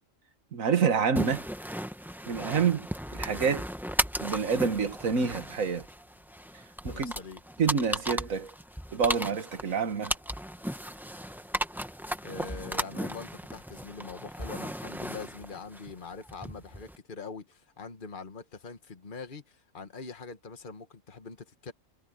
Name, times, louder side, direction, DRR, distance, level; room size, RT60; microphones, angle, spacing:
voice 1, 0.5-1.4 2.3-2.9 3.1-3.7 4.2-5.9 6.8-7.1 7.6-8.5 8.9-10.1, right 6 dB, 90° right, 1.8 m, -27 dB
sound 1, 1.2-17.0, equal, ahead, 1.1 m, -36 dB
voice 2, 6.9-7.4 12.2-21.7, left 4 dB, 40° left, 1.7 m, -43 dB
omnidirectional pair, 1.4 m